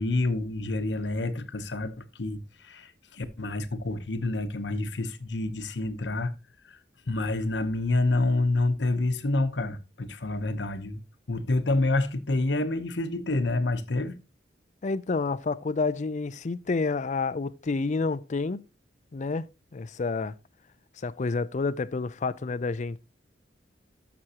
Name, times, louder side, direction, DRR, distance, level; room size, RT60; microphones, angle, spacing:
voice 1, 0.0-6.3 7.1-11.0 11.3-14.2, left 2 dB, 70° left, 1.0 m, -28 dB
voice 2, 14.8-18.6 19.1-19.5 19.7-20.3 21.0-23.0, left 4 dB, 40° left, 0.4 m, -29 dB
13.0 x 6.1 x 2.9 m
head